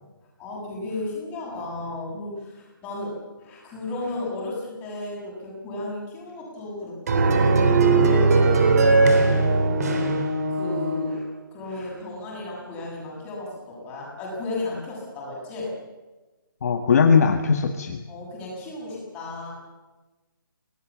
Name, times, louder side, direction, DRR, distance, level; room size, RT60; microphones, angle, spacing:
voice 1, 0.4-8.6 10.5-15.7 18.1-19.6, left 2 dB, 10° left, -4 dB, 7.6 m, -34 dB
sound 1, 7.1-11.2, right 3 dB, 45° right, 3.6 m, -19 dB
voice 2, 16.6-18.0, left 5 dB, 45° left, 5 dB, 1.6 m, -19 dB
25.5 x 19.0 x 7.4 m, 1.2 s
hypercardioid pair, 165°, 12 cm